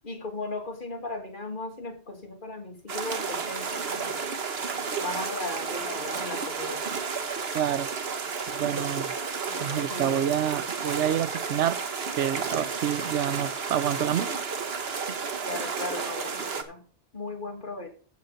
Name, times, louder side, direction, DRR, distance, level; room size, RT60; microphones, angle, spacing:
voice 1, 0.0-4.2 5.0-6.8 8.6-9.1 9.4-10.3 15.4-16.8 17.1-17.9, left 2 dB, 45° left, 2.5 m, -37 dB
sound 1, 2.9-16.6, right 5 dB, 60° right, 1.4 m, -32 dB
voice 2, 7.5-7.9 8.5-9.1 9.6-11.8 12.1-14.3, right 10 dB, 90° right, 1.0 m, -28 dB
14.5 x 6.8 x 4.0 m
omnidirectional pair, 1.2 m